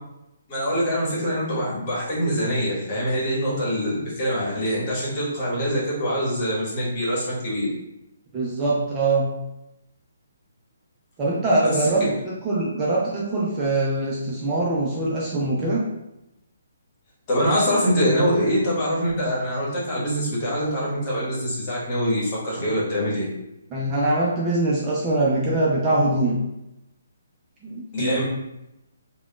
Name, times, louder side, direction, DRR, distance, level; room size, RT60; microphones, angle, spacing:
voice 1, 0.5-7.7 11.6-11.9 17.3-23.2 27.9-28.2, equal, 30° left, -6 dB, 1.3 m, -24 dB
voice 2, 8.3-9.3 11.2-15.8 23.7-26.4 27.6-28.2, right 2 dB, 20° right, -6 dB, 0.5 m, -23 dB
3.4 x 2.3 x 2.3 m, 0.87 s
figure-of-eight pair, 135°, 0 cm